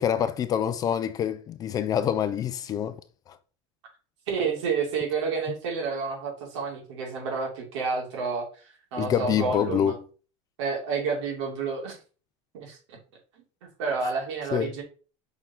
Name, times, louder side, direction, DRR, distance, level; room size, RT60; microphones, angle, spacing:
voice 1, 0.0-3.0 9.0-9.9 14.5-14.7, left 9 dB, 25° left, 0.4 m, -26 dB
voice 2, 4.3-8.5 8.9-10.0 10.6-12.0 12.5-13.0 13.6-14.8, right 5 dB, 80° right, 2.9 m, -30 dB
6.0 x 3.9 x 4.4 m
supercardioid pair, 155°, 15 cm